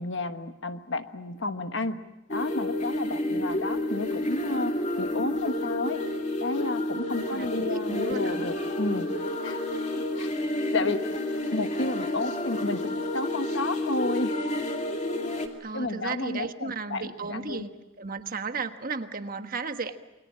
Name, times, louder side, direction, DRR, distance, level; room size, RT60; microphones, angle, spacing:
voice 1, 0.0-2.0 2.3-6.0 6.4-9.1 9.4-9.6 10.1-10.3 10.7-11.0 11.5-14.4 15.7-17.6, left 2 dB, 60° left, 9 dB, 1.3 m, -31 dB
sound 1, 2.3-15.5, left 1 dB, 35° left, 2.6 m, -30 dB
voice 2, 7.3-8.5 15.6-17.7 18.0-20.0, right 4 dB, 45° right, 8 dB, 1.3 m, -35 dB
28.5 x 22.0 x 7.5 m, 1.0 s
head